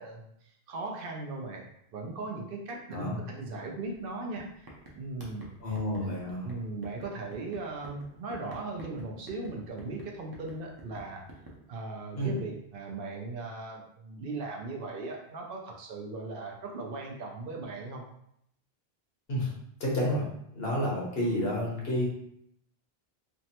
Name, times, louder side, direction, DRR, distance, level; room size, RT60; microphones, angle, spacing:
voice 1, 0.0-1.7 1.9-4.7 4.9-5.7 6.0-6.2 6.4-11.2 11.7-18.0, right 3 dB, 65° right, 0 dB, 0.7 m, -38 dB
sound 1, 3.9-4.1 4.4-11.6, right 1 dB, 30° right, 0.5 m, -49 dB
voice 2, 5.6-6.5 12.2-12.3 19.3-19.5 19.8-20.3 20.5-22.1, equal, 70° left, -4 dB, 1.2 m, -30 dB
3.4 x 2.0 x 2.8 m, 0.73 s
omnidirectional pair, 1.0 m